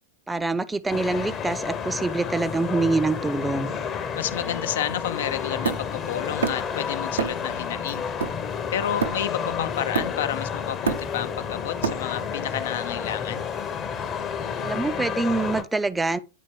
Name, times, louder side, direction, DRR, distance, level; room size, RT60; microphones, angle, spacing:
voice 1, 0.3-3.7 14.6-16.2, right 3 dB, 10° right, 0.4 m, -25 dB
sound 1, 0.9-15.6, left 7 dB, 25° left, 0.7 m, -31 dB
voice 2, 4.2-8.0 8.7-13.4, left 10 dB, 60° left, 0.4 m, -30 dB
Hammer, 5.6-6.8 7.2-7.5 7.9-9.5 9.9-10.4 10.7-12.4, right 6 dB, 70° right, 0.6 m, -29 dB
9.3 x 4.2 x 3.1 m
figure-of-eight pair, 90°, 0 cm